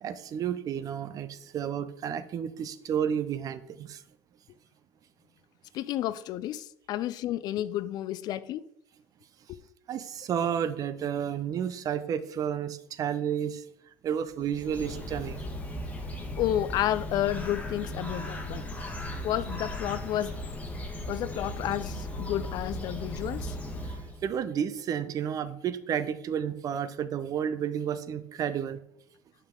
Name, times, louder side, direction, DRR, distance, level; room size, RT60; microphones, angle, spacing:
voice 1, 0.0-4.0 9.9-13.6 14.0-15.5 23.9-28.8, right 8 dB, 45° right, 0.6 m, -31 dB
voice 2, 5.7-8.6 9.5-9.6 16.4-18.6 19.2-20.4 21.1-23.6, left 12 dB, 50° left, 0.4 m, -31 dB
Bird, 14.3-24.3, left 1 dB, 15° left, 1.4 m, -37 dB
7.2 x 5.5 x 3.7 m
hypercardioid pair, 75°, 9 cm